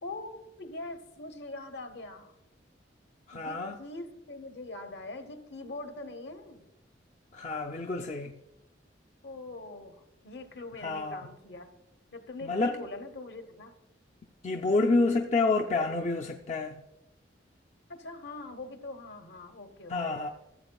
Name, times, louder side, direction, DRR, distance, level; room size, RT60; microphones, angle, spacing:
voice 1, 0.0-2.3 3.3-6.6 9.2-11.7 12.1-13.7 17.9-20.3, left 2 dB, 65° left, 7 dB, 1.0 m, -43 dB
voice 2, 3.3-3.8 7.3-8.4 10.8-11.3 12.4-12.8 14.4-16.8 19.9-20.3, left 3 dB, 40° left, 3 dB, 0.5 m, -28 dB
15.0 x 7.9 x 2.3 m, 0.91 s
head